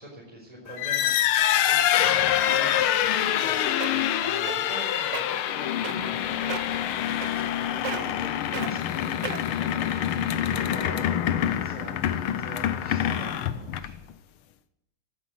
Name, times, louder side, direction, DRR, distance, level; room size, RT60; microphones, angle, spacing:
voice 1, 0.0-1.4 1.7-14.1, equal, 15° right, -5 dB, 4.4 m, -44 dB
sound 1, 0.7-14.1, left 11 dB, 85° left, 1.7 m, -26 dB
sound 2, 3.4-3.5 3.8-4.1 4.5-4.8 5.1-5.2 5.8-6.2 6.5-6.8 7.2-7.6 7.8-8.2 8.5-8.7 9.2-9.6 10.2-10.3, right 8 dB, 65° right, 1.6 m, -34 dB
17.5 x 9.6 x 7.6 m, 0.86 s
omnidirectional pair, 2.3 m